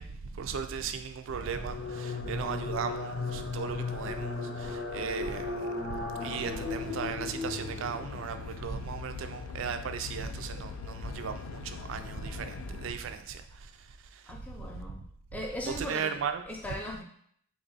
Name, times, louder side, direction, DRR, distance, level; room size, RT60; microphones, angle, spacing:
voice 1, 0.0-14.7 15.8-16.4, right 6 dB, 65° right, 0.3 m, -37 dB
sound 1, 1.4-8.3, left 3 dB, 55° left, 0.7 m, -36 dB
Aircraft, 6.2-12.9, left 6 dB, 85° left, 0.3 m, -42 dB
voice 2, 14.3-15.0 15.3-17.0, left 1 dB, 5° left, 0.4 m, -39 dB
3.5 x 2.4 x 3.9 m
head